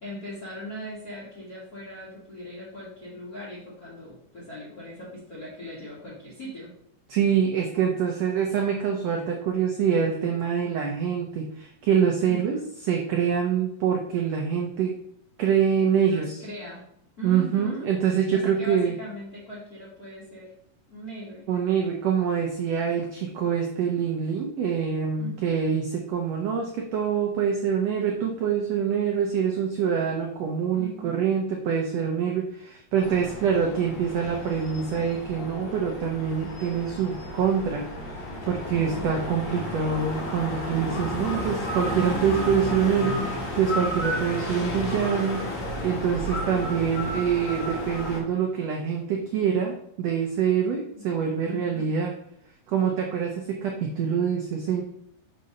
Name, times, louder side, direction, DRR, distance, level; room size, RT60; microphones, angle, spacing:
voice 1, 0.0-6.7 12.2-12.7 16.0-16.8 17.2-18.0 18.3-20.5 20.9-21.4 25.1-25.6 30.7-31.3 50.9-51.0 51.4-51.9, equal, 35° left, -7 dB, 1.5 m, -40 dB
voice 2, 7.1-15.0 15.4-16.4 17.2-19.0 21.5-38.1 38.5-52.1 52.7-54.8, right 7 dB, 85° right, 1 dB, 1.4 m, -25 dB
sound 1, 33.0-48.2, left 1 dB, 50° left, 3.0 m, -32 dB
6.8 x 3.9 x 5.2 m, 0.74 s
omnidirectional pair, 4.0 m